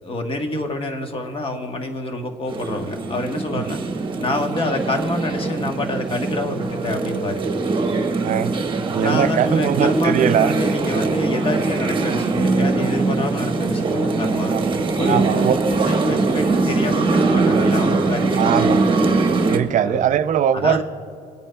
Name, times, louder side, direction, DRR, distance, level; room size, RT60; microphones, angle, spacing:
voice 1, 0.0-3.8 4.2-7.4 9.0-14.6 15.0-19.0 19.8-20.0 20.5-20.8, left 2 dB, 35° left, 4 dB, 1.2 m, -27 dB
sound 1, 2.5-19.6, right 3 dB, 30° right, 1.2 m, -21 dB
voice 2, 8.2-8.6 8.9-10.5 14.5-14.7 15.0-15.9 18.3-18.8 19.5-20.8, right 10 dB, 50° right, 13 dB, 0.4 m, -21 dB
24.0 x 8.9 x 2.2 m, 2.7 s
cardioid pair, 110°, 17 cm